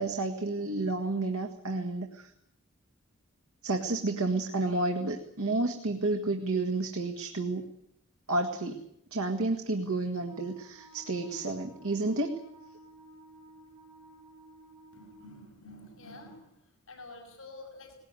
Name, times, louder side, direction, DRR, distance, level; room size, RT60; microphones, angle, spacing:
voice 1, 0.0-2.3 3.6-7.6 8.3-8.8 9.1-12.4, right 2 dB, 85° right, 3 dB, 1.9 m, -30 dB
Wind instrument woodwind instrument, 10.2-15.4, right 2 dB, 15° right, 7.7 m, -54 dB
voice 2, 14.9-16.6 16.9-17.9, left 2 dB, 70° left, 1 dB, 6.2 m, -48 dB
20.0 x 18.0 x 9.7 m, 0.76 s
head